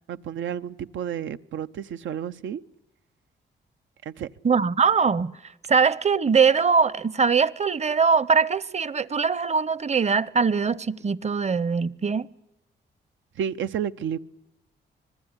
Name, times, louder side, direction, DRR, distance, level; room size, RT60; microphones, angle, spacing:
voice 1, 0.1-2.6 4.1-4.3 13.4-14.2, right 9 dB, 85° right, 0.9 m, -31 dB
voice 2, 4.4-5.3 5.7-12.3, right 5 dB, 35° right, 0.9 m, -22 dB
26.0 x 20.0 x 9.7 m
cardioid pair, 90°, 19 cm